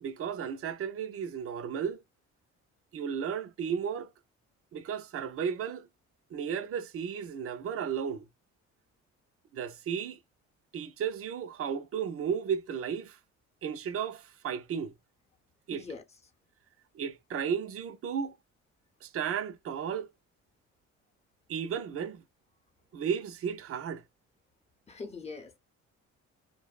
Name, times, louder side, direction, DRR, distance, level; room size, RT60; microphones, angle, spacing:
voice 1, 0.0-2.0 2.9-4.1 4.7-5.9 6.3-8.3 9.5-10.2 10.7-13.2 13.6-14.9 15.7-15.8 16.9-18.4 19.0-20.1 21.5-22.2 22.9-24.0, right 7 dB, 50° right, 0.5 m, -34 dB
voice 2, 15.7-16.2 24.9-25.6, left 4 dB, 20° left, 0.8 m, -42 dB
2.7 x 2.0 x 2.3 m
cardioid pair, 90°, 30 cm